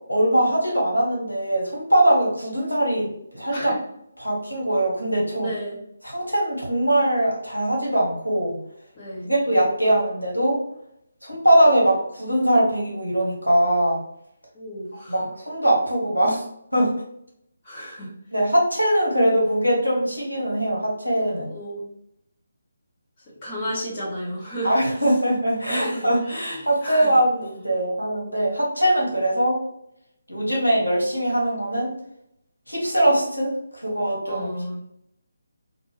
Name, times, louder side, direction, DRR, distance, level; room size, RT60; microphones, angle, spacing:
voice 1, 0.1-3.7 4.2-5.5 6.0-8.6 9.2-10.6 11.2-14.0 15.1-16.4 16.7-16.9 18.3-21.5 24.6-29.6 30.3-31.9 32.7-34.5, right 1 dB, 90° left, -3 dB, 1.2 m, -21 dB
voice 2, 5.4-5.8 9.0-9.3 14.5-15.1 17.6-18.1 21.3-21.8 23.4-24.7 25.7-27.1 34.3-34.8, equal, 25° left, -7 dB, 1.2 m, -32 dB
2.6 x 2.6 x 3.1 m, 0.75 s
figure-of-eight pair, 150°, 0 cm